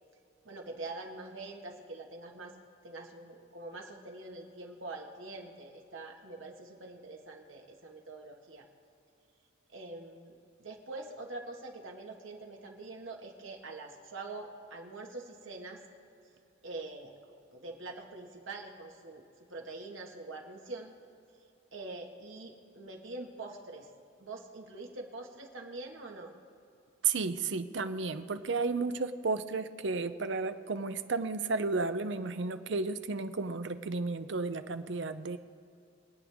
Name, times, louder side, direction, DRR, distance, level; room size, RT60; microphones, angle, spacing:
voice 1, 0.4-2.6 2.8-8.7 9.7-15.8 16.6-17.1 17.5-19.2 19.5-20.9 21.7-23.9 24.2-26.3, right 2 dB, 85° right, 1 dB, 1.8 m, -44 dB
voice 2, 27.0-35.4, right 4 dB, 65° right, 10 dB, 0.6 m, -33 dB
24.5 x 8.8 x 3.6 m, 2.6 s
head